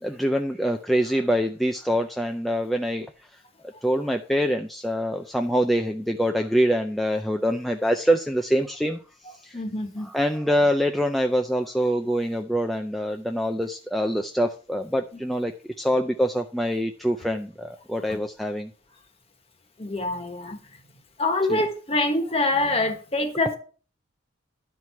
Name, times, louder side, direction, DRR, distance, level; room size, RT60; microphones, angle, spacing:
voice 1, 0.0-3.1 3.8-9.0 9.3-9.6 10.0-18.7 21.5-21.6, equal, ahead, 0.4 m, -25 dB
voice 2, 9.5-10.1 19.8-20.6 21.2-23.6, left 2 dB, 30° left, 1.3 m, -25 dB
11.0 x 4.6 x 5.7 m
head